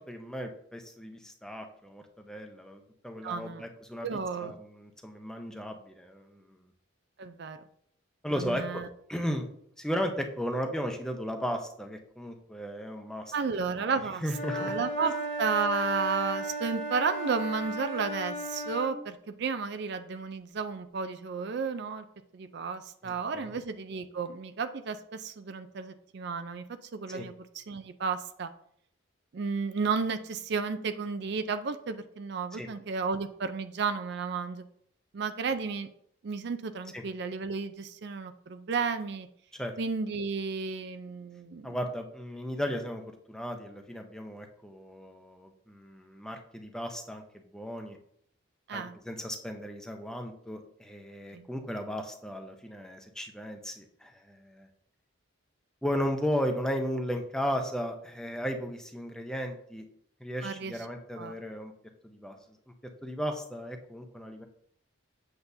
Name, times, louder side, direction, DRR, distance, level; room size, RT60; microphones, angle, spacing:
voice 1, 0.1-6.6 8.2-8.8 9.1-9.5 9.8-13.3 13.8-14.7 23.0-23.5 27.1-27.3 32.5-32.7 36.9-37.0 39.5-39.7 41.6-43.0 43.3-48.0 48.7-54.7 55.8-59.8 60.2-61.7 62.0-62.4 63.0-64.5, equal, 5° left, 4 dB, 0.6 m, -35 dB
voice 2, 3.2-3.7 4.0-4.5 7.2-7.6 8.3-8.9 13.3-14.2 14.5-15.1 15.4-22.1 22.3-26.6 26.9-28.5 29.3-34.6 35.1-35.9 36.2-39.3 39.8-41.8 48.7-48.9 51.3-51.5 60.4-60.8 61.2-61.4, right 5 dB, 50° right, 10 dB, 0.4 m, -33 dB
Wind instrument woodwind instrument, 14.3-18.9, equal, 60° left, 1.6 m, -35 dB
8.0 x 6.8 x 2.7 m, 0.68 s
head